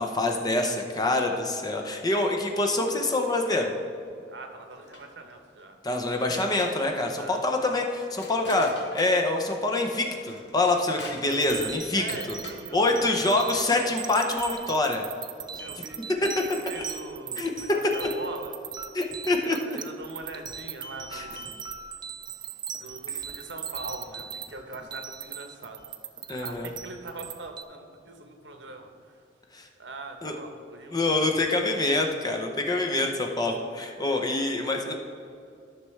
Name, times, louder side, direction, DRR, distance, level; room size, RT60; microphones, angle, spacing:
voice 1, 0.0-3.7 5.8-8.7 8.9-12.4 12.7-15.0 17.4-17.5 18.9-19.6 21.1-21.2 26.3-26.7 29.5-29.7 30.2-30.3 30.9-35.0, left 2 dB, 20° left, 2 dB, 0.7 m, -26 dB
voice 2, 4.3-5.7 7.2-7.4 11.0-11.1 11.9-13.1 14.3-14.4 15.6-18.5 19.2-21.6 22.8-25.8 26.4-29.2 29.8-31.1, right 2 dB, 70° right, 4 dB, 1.0 m, -42 dB
sound 1, 4.7-5.3 5.8-5.9 6.3-9.4 9.8-11.6 12.4-12.8 13.2-13.9, left 2 dB, 70° left, 1.1 m, -45 dB
sound 2, 11.3-27.6, right 7 dB, 25° right, 0.4 m, -39 dB
13.0 x 5.9 x 3.2 m, 2.5 s
head